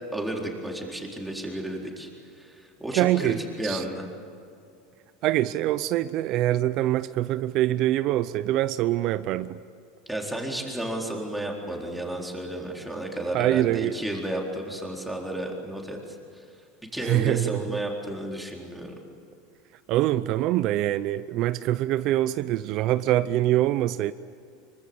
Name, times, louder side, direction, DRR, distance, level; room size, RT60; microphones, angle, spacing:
voice 1, 0.1-2.1 2.4-4.1 10.1-16.0 16.9-18.9, right 1 dB, 5° right, 0 dB, 4.1 m, -32 dB
voice 2, 2.9-3.8 5.2-9.6 13.3-13.9 17.0-17.8 19.9-24.1, right 14 dB, 45° right, 14 dB, 0.6 m, -24 dB
25.0 x 24.0 x 8.7 m, 2.4 s
supercardioid pair, 140°, 0 cm